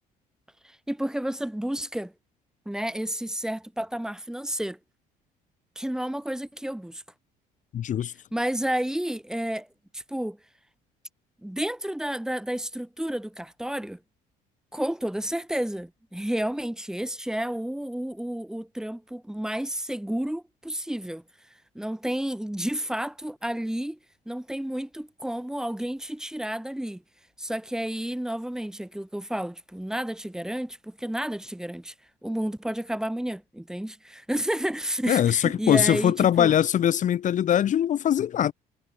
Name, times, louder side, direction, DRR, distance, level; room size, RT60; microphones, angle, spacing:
voice 1, 0.6-2.1 2.7-4.8 5.8-7.0 8.3-9.7 9.9-10.4 11.4-14.0 14.7-21.2 21.7-24.0 24.3-27.0 27.4-31.9 32.2-36.5, right 1 dB, 5° right, 2.8 m, -31 dB
voice 2, 7.7-8.1 35.1-38.5, left 10 dB, 50° left, 2.0 m, -22 dB
cardioid pair, 105°, 16 cm